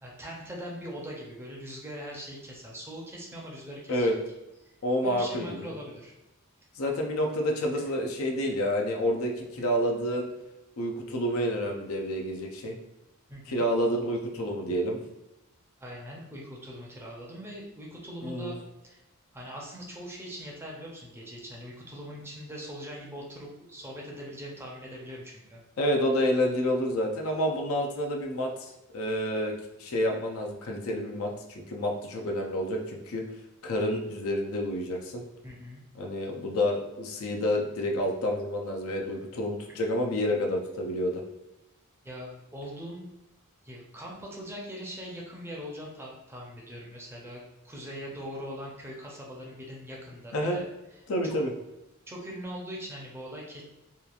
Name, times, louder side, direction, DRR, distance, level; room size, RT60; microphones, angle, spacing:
voice 1, 0.0-4.2 5.0-6.1 7.7-7.8 13.3-13.6 15.8-18.6 18.8-19.0 19.3-25.6 35.4-35.8 39.7-39.9 42.0-43.1 43.6-50.6 50.9-51.4 52.1-53.6, equal, 10° right, -3 dB, 0.5 m, -41 dB
voice 2, 4.8-5.7 6.8-10.3 10.8-12.8 13.5-15.0 18.2-18.5 25.8-33.2 33.6-35.2 35.9-41.2 50.3-50.6 51.1-51.5, equal, 70° left, 1 dB, 0.5 m, -29 dB
2.9 x 2.3 x 2.3 m, 0.96 s
head